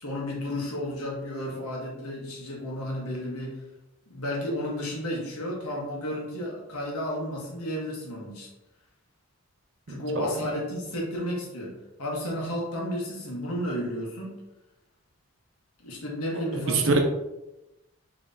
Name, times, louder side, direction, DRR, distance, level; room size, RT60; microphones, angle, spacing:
voice 1, 0.0-3.6 4.1-8.5 9.9-14.4 15.8-17.0, equal, 85° left, -2 dB, 1.2 m, -32 dB
voice 2, 9.9-10.3 16.7-17.0, right 3 dB, 60° right, 3 dB, 0.7 m, -24 dB
5.3 x 3.1 x 2.7 m, 0.94 s
head